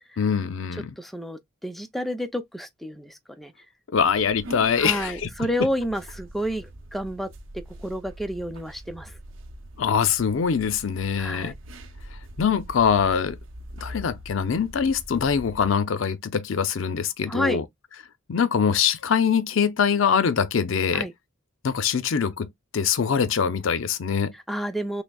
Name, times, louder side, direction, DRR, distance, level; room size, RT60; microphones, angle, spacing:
voice 1, 0.2-0.9 3.9-5.3 9.8-11.5 12.4-13.4 13.8-17.6 18.3-21.1 21.6-24.3, left 6 dB, 70° left, 0.5 m, -23 dB
voice 2, 1.0-3.5 4.8-7.3 7.8-9.2 11.2-11.5 17.3-17.6 20.9-21.1 24.5-25.0, equal, ahead, 0.5 m, -30 dB
sound 1, 3.9-15.7, equal, 75° right, 0.7 m, -43 dB
6.0 x 2.1 x 2.3 m
head